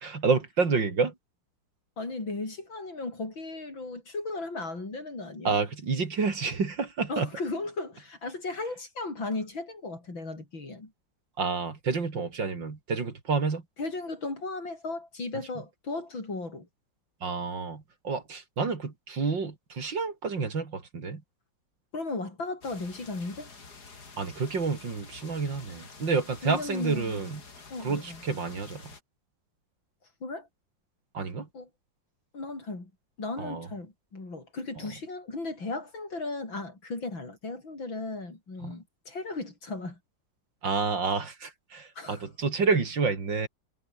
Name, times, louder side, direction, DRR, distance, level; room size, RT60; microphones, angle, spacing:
voice 1, 0.0-1.1 5.4-7.3 11.4-13.6 17.2-21.2 24.2-27.4 27.8-28.8 31.1-31.5 33.4-33.7 38.6-38.7 40.6-43.5, right 4 dB, 70° right, 3.9 m, -29 dB
voice 2, 2.0-5.6 7.1-10.9 13.8-16.7 21.9-23.5 26.4-27.2 27.7-28.2 30.2-30.5 31.5-31.7 32.3-32.9 33.2-40.0 42.0-42.3, left 3 dB, 80° left, 6.9 m, -36 dB
sound 1, 22.6-29.0, left 4 dB, 55° left, 3.7 m, -49 dB
omnidirectional pair, 2.1 m